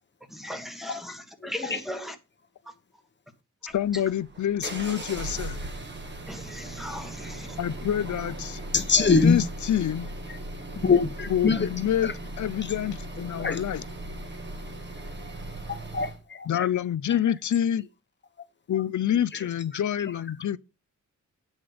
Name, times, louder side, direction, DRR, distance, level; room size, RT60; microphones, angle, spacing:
voice 1, 0.3-2.1 6.3-7.6, left 1 dB, ahead, 1.3 m, -37 dB
voice 2, 0.9-1.8 8.7-9.5 10.3-10.4 10.7-11.7 12.0-12.8 13.2-13.6 15.7-16.7 17.1-17.3 18.7-18.8 19.1-20.5, left 4 dB, 35° left, 1.1 m, -26 dB
voice 3, 3.7-5.6 7.6-8.6 9.2-10.1 11.3-13.8 16.5-17.8 18.7-20.6, left 10 dB, 70° left, 0.6 m, -27 dB
sound 1, 3.7-16.2, right 1 dB, 35° right, 1.6 m, -38 dB
8.9 x 5.4 x 5.0 m
wide cardioid pair, 165°, 31 cm